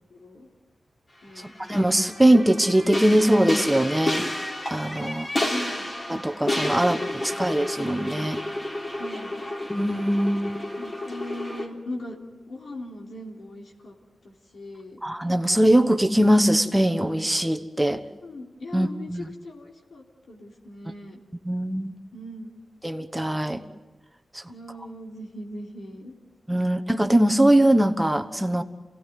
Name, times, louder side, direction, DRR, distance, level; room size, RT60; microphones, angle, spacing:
voice 1, 0.1-0.5 1.2-1.5 5.4-5.9 7.3-7.4 8.9-9.4 10.2-12.2 12.5-13.9 14.2-15.0 18.2-21.2 22.1-22.5 24.5-26.1, left 1 dB, 70° left, -1 dB, 3.3 m, -40 dB
sound 1, 1.4-11.7, left 1 dB, 30° left, 3.4 m, -31 dB
voice 2, 1.7-4.3 4.7-5.3 6.1-8.4 9.7-10.5 15.0-18.0 18.7-19.2 21.4-22.0 22.8-23.6 24.3-24.4 26.5-28.6, right 1 dB, 10° right, 8 dB, 1.2 m, -21 dB
27.5 x 18.0 x 9.4 m, 1.2 s
wide cardioid pair, 90°, 0 cm